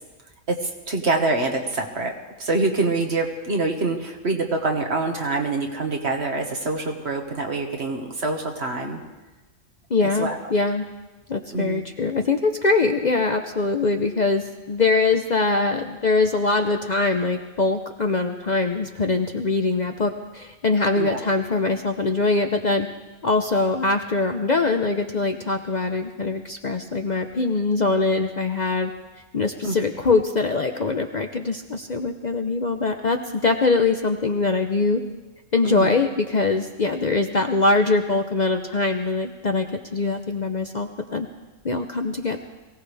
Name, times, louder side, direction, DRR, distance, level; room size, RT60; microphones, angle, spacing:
voice 1, 0.5-2.1 2.4-9.0 10.0-10.4 11.5-11.8 21.0-21.2 29.6-29.9 35.6-35.9, right 3 dB, 55° right, 2 dB, 1.8 m, -25 dB
voice 2, 9.9-10.8 11.3-22.9 23.2-28.9 29.3-35.0 35.5-39.7 39.9-41.3 41.6-42.4, left 3 dB, 40° left, 5 dB, 0.7 m, -23 dB
22.5 x 17.0 x 3.4 m, 1.2 s
omnidirectional pair, 1.3 m